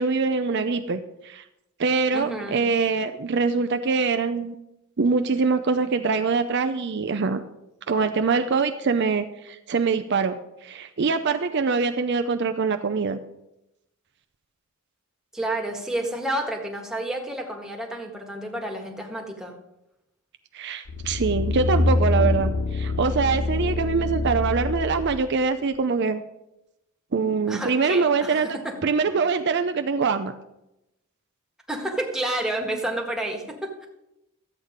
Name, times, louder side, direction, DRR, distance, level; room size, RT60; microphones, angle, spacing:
voice 1, 0.0-1.4 1.8-4.6 5.0-7.4 7.9-10.4 10.6-13.2 20.5-26.2 27.1-28.5 28.8-30.3, right 4 dB, 50° right, 8 dB, 0.5 m, -24 dB
voice 2, 2.1-2.6 15.3-19.5 27.5-28.8 31.7-33.9, right 1 dB, 5° right, 0 dB, 1.5 m, -30 dB
sound 1, 20.9-25.3 25.7-25.8, left 2 dB, 80° left, 0.8 m, -25 dB
13.0 x 8.3 x 5.1 m, 0.89 s
head